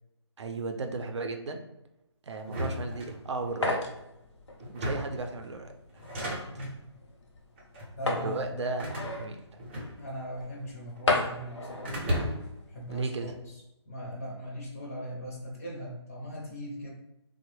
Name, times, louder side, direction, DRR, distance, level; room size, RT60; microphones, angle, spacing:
voice 1, 0.4-1.6 2.2-3.8 4.7-5.7 6.2-6.4 8.0-9.4 12.9-13.3, right 3 dB, 75° right, 5 dB, 0.5 m, -35 dB
sound 1, 2.4-3.6 4.6-5.3 5.9-6.8 7.6-8.0 8.8-10.3 10.6-11.3 11.8-12.6, equal, 25° right, 0.5 m, -35 dB
sound 2, 3.0-13.2, left 3 dB, 75° left, 0.7 m, -36 dB
voice 2, 8.0-8.5 10.0-11.9 12.7-13.5 13.9-16.9, equal, 30° left, -2 dB, 0.5 m, -39 dB
3.0 x 2.0 x 3.1 m, 0.90 s
hypercardioid pair, 160°, 15 cm